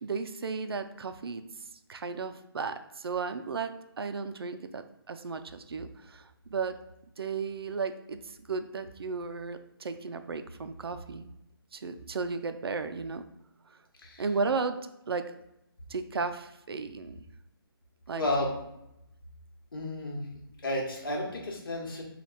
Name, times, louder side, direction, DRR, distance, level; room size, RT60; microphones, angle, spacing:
voice 1, 0.0-1.4 1.9-4.8 5.1-6.8 7.2-11.3 11.7-13.2 13.7-13.8 14.2-14.8 15.1-15.2 15.9-17.2 18.1-18.2, right 4 dB, 75° right, 9 dB, 0.4 m, -34 dB
voice 2, 18.1-18.5 19.7-20.2 20.6-22.0, left 1 dB, 60° left, -1 dB, 1.2 m, -32 dB
3.4 x 2.3 x 4.0 m, 0.84 s
hypercardioid pair, 165°, 13 cm